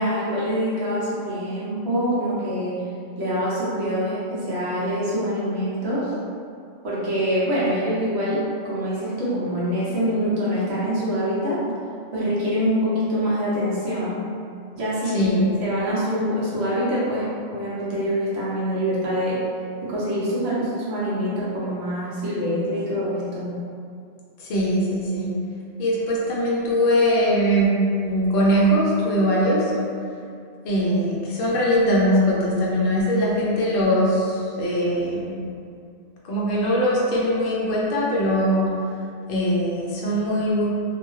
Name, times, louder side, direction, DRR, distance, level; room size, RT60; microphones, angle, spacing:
voice 1, 0.0-2.8 3.2-6.1 6.8-8.4 8.6-11.8 12.1-14.2 14.7-19.4 19.8-23.5, equal, 60° right, -8 dB, 1.0 m, -25 dB
voice 2, 15.0-15.5 24.4-25.3 25.8-29.7 30.6-35.4 36.2-38.7 39.3-40.7, equal, 60° left, -6 dB, 0.7 m, -21 dB
2.6 x 2.2 x 3.0 m, 2.4 s
omnidirectional pair, 1.3 m